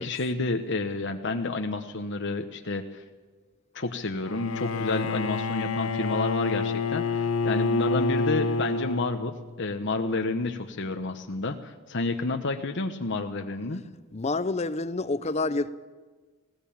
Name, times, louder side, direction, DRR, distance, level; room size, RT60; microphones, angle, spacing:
voice 1, 0.0-3.0 3.7-13.8, left 3 dB, 60° left, 1.0 m, -30 dB
Bowed string instrument, 4.2-9.5, left 3 dB, 80° left, 0.8 m, -28 dB
voice 2, 14.1-15.7, left 3 dB, 30° left, 0.7 m, -28 dB
19.5 x 18.0 x 8.7 m
head